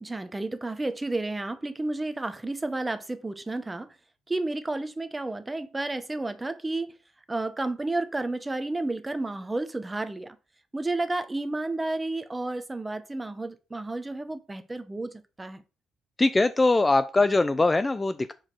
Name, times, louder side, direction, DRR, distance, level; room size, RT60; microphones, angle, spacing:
voice 1, 0.0-3.9 4.3-6.9 7.3-10.4 10.7-15.6, right 2 dB, 15° right, 0.9 m, -31 dB
voice 2, 16.2-18.3, left 2 dB, 20° left, 0.4 m, -22 dB
5.0 x 4.1 x 5.8 m
cardioid pair, 90°, 0 cm